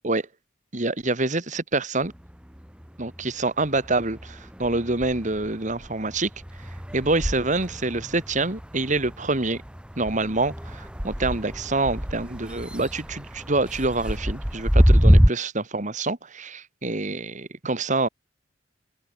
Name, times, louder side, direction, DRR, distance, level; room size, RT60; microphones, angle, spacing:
voice 1, 0.7-2.1 3.0-6.3 6.9-9.6 10.0-18.1, right 2 dB, 40° right, 2.1 m, -26 dB
sound 1, 2.0-3.3 3.6-15.3, equal, 5° right, 1.6 m, -25 dB
open air
head